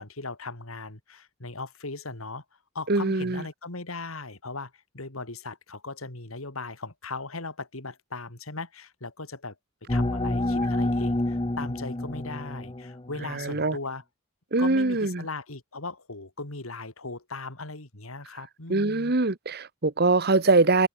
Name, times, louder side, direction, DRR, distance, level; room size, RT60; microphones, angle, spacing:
voice 1, 0.0-2.4 2.7-9.5 9.9-14.0 14.6-19.1, left 3 dB, 85° left, 3.4 m, -38 dB
voice 2, 2.9-3.4 13.4-13.7 14.5-15.2 18.7-20.9, right 3 dB, 50° right, 1.3 m, -23 dB
sound 1, 9.9-13.4, left 1 dB, 25° left, 0.9 m, -28 dB
head